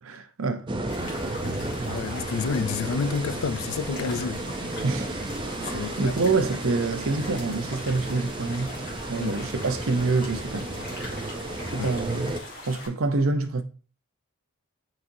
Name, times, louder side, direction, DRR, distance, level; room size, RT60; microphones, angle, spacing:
voice 1, 0.0-0.7 4.8-5.2 5.6-8.8 9.1-11.0 11.7-12.3 12.7-13.6, right 3 dB, 65° right, 0.6 m, -27 dB
sound 1, 0.7-12.4, right 2 dB, 20° right, 0.5 m, -33 dB
sound 2, 0.9-12.9, left 1 dB, 40° left, 1.7 m, -41 dB
voice 2, 1.8-4.4 5.7-6.1 9.2-9.4 11.8-11.9, left 5 dB, 70° left, 0.4 m, -29 dB
8.6 x 4.1 x 2.7 m
head